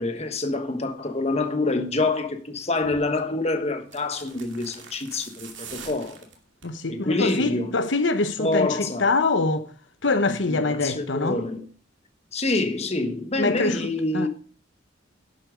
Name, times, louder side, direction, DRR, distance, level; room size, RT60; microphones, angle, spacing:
voice 1, 0.0-6.2 6.9-7.9 8.4-9.1 10.2-11.6 12.3-14.3, left 2 dB, 35° left, 1.4 m, -26 dB
sound 1, 2.8-3.1 3.8-6.8 7.1-7.5 7.8-7.9, right 6 dB, 75° right, 2.7 m, -44 dB
voice 2, 6.6-9.7 10.0-11.4 13.4-13.8 14.1-14.3, left 3 dB, 75° left, 1.0 m, -24 dB
11.5 x 8.5 x 5.1 m
head